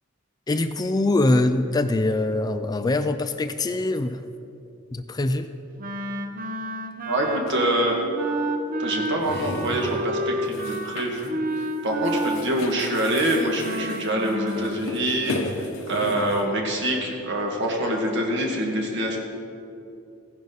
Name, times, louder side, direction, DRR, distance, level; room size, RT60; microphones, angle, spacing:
voice 1, 0.5-4.2 4.9-5.5, left 2 dB, 20° left, 9 dB, 0.4 m, -23 dB
Wind instrument woodwind instrument, 5.8-14.8, right 2 dB, 45° right, 0.8 m, -31 dB
voice 2, 7.1-8.0 8.8-11.3 11.8-19.2, right 1 dB, 60° right, 0 dB, 2.0 m, -25 dB
sound 1, 7.5-7.6 9.1-10.0 10.5-11.3 11.6-11.8 12.0-16.4, left 2 dB, 75° left, 1.1 m, -35 dB
15.5 x 10.5 x 4.0 m, 2.7 s
head